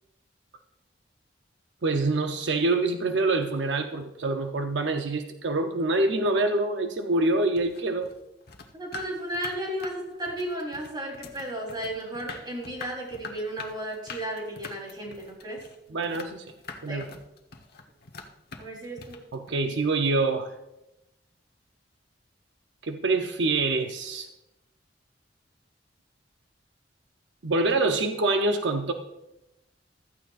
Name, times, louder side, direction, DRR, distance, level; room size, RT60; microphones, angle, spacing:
voice 1, 1.8-8.1 15.9-16.4 16.8-17.0 19.3-20.5 22.8-24.3 27.4-28.9, right 2 dB, 80° right, 5 dB, 0.7 m, -25 dB
Cooking Prep, 7.5-19.5, left 4 dB, 60° left, 1.2 m, -44 dB
voice 2, 8.7-15.6 16.9-17.1 18.6-19.2, right 1 dB, 25° right, -1 dB, 3.7 m, -34 dB
15.0 x 13.5 x 2.5 m, 0.92 s
head